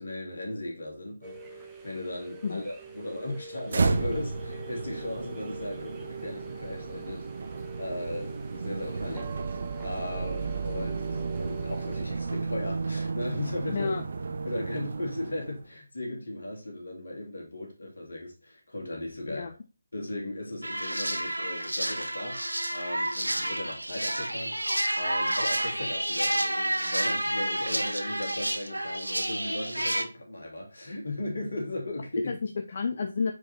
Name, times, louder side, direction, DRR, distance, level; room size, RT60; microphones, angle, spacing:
voice 1, 0.0-7.2 7.8-9.3 9.8-13.9 14.4-19.5 19.9-22.4 22.7-24.6 24.9-32.3, left 1 dB, 65° left, 2.6 m, -37 dB
sound 1, 1.2-12.1, right 4 dB, 10° right, 0.8 m, -43 dB
sound 2, 3.7-15.7, right 4 dB, 50° right, 0.6 m, -33 dB
voice 2, 13.7-14.0 19.3-19.5 32.3-33.3, left 5 dB, 40° left, 0.5 m, -31 dB
sound 3, 20.6-30.0, right 1 dB, 80° right, 0.8 m, -30 dB
4.9 x 4.8 x 4.1 m
figure-of-eight pair, 150°, 0 cm